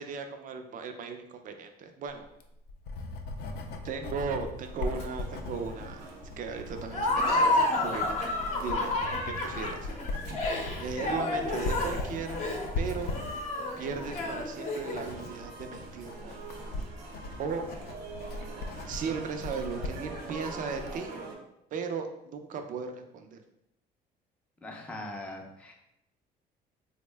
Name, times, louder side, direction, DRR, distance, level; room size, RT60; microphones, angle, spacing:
voice 1, 0.0-2.3 3.8-9.9 10.8-12.4 12.8-13.1 13.8-16.4 17.4-17.7 18.9-21.2 21.7-23.4, right 5 dB, 50° right, 6 dB, 0.5 m, -37 dB
Writing, 2.2-21.0, left 2 dB, 70° left, 0.4 m, -39 dB
sound 1, 4.6-21.3, right 3 dB, 90° right, 0.7 m, -46 dB
Laughter, 6.9-15.2, left 2 dB, 45° left, 0.7 m, -30 dB
voice 2, 24.6-25.7, left 1 dB, 5° left, 0 dB, 0.5 m, -41 dB
3.5 x 2.1 x 3.3 m, 0.81 s
cardioid pair, 110°, 17 cm